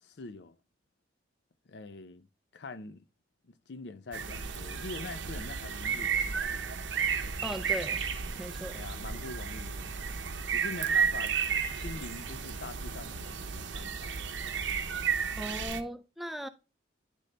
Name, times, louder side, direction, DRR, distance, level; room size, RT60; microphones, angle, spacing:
voice 1, 0.0-0.6 1.7-2.3 2.5-3.0 3.4-6.4 8.7-10.0 10.3-11.4 11.8-14.2, left 3 dB, 65° left, 0.5 m, -44 dB
sound 1, 4.1-15.8, right 6 dB, 80° right, 0.7 m, -33 dB
voice 2, 7.4-8.0 8.4-8.9 15.4-16.5, equal, ahead, 0.4 m, -38 dB
10.0 x 3.9 x 3.2 m
head